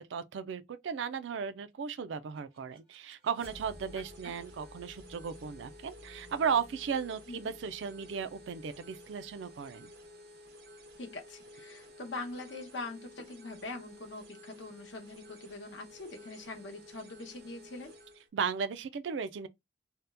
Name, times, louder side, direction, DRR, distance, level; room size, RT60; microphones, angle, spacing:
voice 1, 0.1-9.9 18.3-19.5, right 6 dB, 80° right, 0.4 m, -35 dB
sound 1, 1.9-10.9, left 1 dB, 25° right, 1.0 m, -57 dB
sound 2, 3.3-18.3, left 1 dB, 55° right, 0.8 m, -53 dB
voice 2, 11.0-17.9, left 2 dB, 80° left, 0.8 m, -43 dB
2.8 x 2.1 x 3.3 m
head